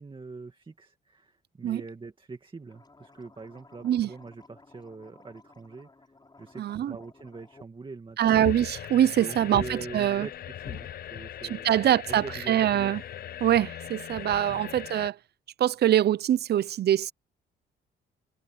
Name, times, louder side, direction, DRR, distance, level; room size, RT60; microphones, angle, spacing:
voice 1, 0.0-5.9 6.4-8.4 9.2-11.7 12.1-12.8 14.5-14.6, right 3 dB, 25° right, 2.3 m, -43 dB
sound 1, 2.6-7.7 8.0-8.5, left 3 dB, 20° left, 6.3 m, -55 dB
voice 2, 6.6-7.0 8.2-10.3 11.5-13.0 13.4-15.2 15.6-17.1, right 11 dB, 55° right, 0.5 m, -24 dB
sound 2, 8.3-15.1, left 11 dB, 50° left, 0.5 m, -39 dB
cardioid pair, 90°, 20 cm